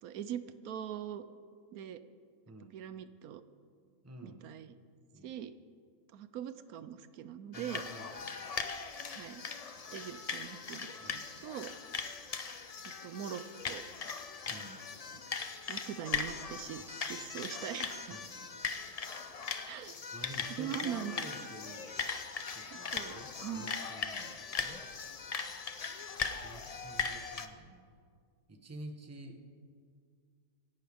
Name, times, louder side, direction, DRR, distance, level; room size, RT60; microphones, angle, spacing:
voice 1, 0.0-1.2 1.7-2.0 2.7-3.4 4.2-4.8 5.2-5.5 6.1-8.2 9.1-9.4 9.9-11.7 12.3-12.4 12.8-13.8 15.1-15.2 15.7-18.2 19.7-20.3 20.6-21.2 22.7-23.2 23.4-23.7, right 9 dB, 80° right, 12 dB, 1.1 m, -42 dB
voice 2, 2.5-2.8 4.0-4.5 5.1-5.4 7.5-8.5 11.0-11.5 14.5-14.8 16.8-17.0 18.1-18.7 20.1-21.9 22.5-24.9 26.4-27.9 28.5-29.4, right 1 dB, 10° right, 5 dB, 0.9 m, -50 dB
sound 1, 7.5-27.5, left 5 dB, 45° left, 0.5 m, -39 dB
25.0 x 11.5 x 3.5 m, 2.1 s
omnidirectional pair, 1.5 m